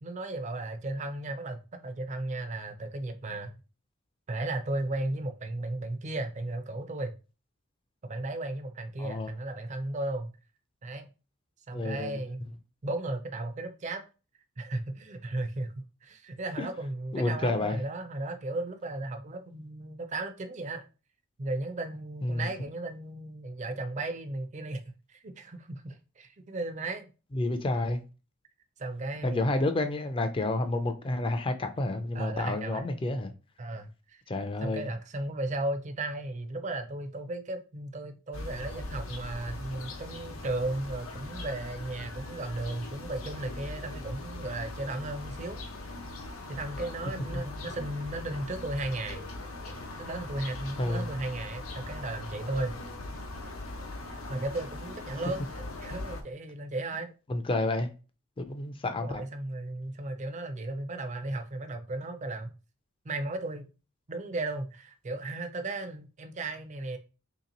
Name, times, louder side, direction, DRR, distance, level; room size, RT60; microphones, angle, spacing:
voice 1, 0.0-3.5 4.3-7.1 8.0-10.3 10.8-11.1 11.7-12.4 12.8-14.0 14.6-20.9 21.4-27.1 28.8-29.5 32.1-32.9 33.6-34.2 34.6-45.6 46.3-49.2 50.0-52.7 54.1-57.1 58.9-62.5 63.0-63.7 64.1-67.0, right 2 dB, 35° right, 0.4 m, -35 dB
voice 2, 9.0-9.3 11.7-12.2 16.6-16.7 17.1-17.8 22.2-22.5 27.3-28.0 29.2-33.3 34.3-34.9 47.3-47.4 50.8-51.0 57.3-57.9 58.4-59.2, left 2 dB, 25° left, 0.4 m, -30 dB
sound 1, 38.3-56.2, left 2 dB, 80° left, 0.8 m, -40 dB
3.2 x 2.9 x 3.9 m
head